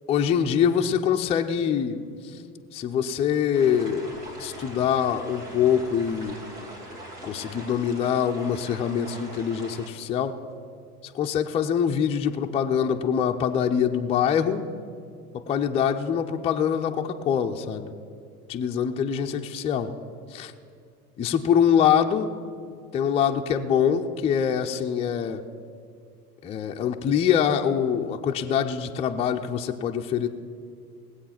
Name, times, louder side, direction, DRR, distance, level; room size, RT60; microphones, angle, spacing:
voice 1, 0.1-2.0 2.7-4.1 4.4-6.4 7.2-10.4 11.0-14.6 15.3-17.9 18.5-19.9 20.3-20.5 21.2-22.3 22.9-25.4 26.4-30.3, left 8 dB, 15° left, 3 dB, 0.4 m, -24 dB
sound 1, 3.5-9.9, right 1 dB, 75° right, 2.6 m, -42 dB
19.0 x 8.0 x 5.8 m, 2.3 s
figure-of-eight pair, 85°, 47 cm